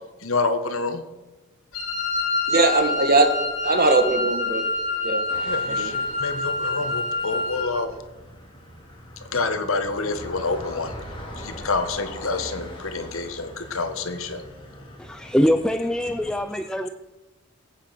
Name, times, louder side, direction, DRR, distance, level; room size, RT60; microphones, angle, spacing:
voice 1, 0.2-1.0 5.4-7.9 9.2-14.4, left 3 dB, 75° left, 8 dB, 1.5 m, -28 dB
Wind instrument woodwind instrument, 1.7-7.8, left 3 dB, 60° left, 3.4 m, -27 dB
voice 2, 2.5-3.3 3.6-4.7 5.0-5.2 5.7-5.9, right 3 dB, 45° right, 7 dB, 1.5 m, -20 dB
sound 1, 5.3-16.4, equal, 25° left, 2.9 m, -41 dB
voice 3, 15.0-16.9, equal, 5° left, 7 dB, 0.4 m, -23 dB
20.0 x 8.6 x 6.0 m, 1.1 s
head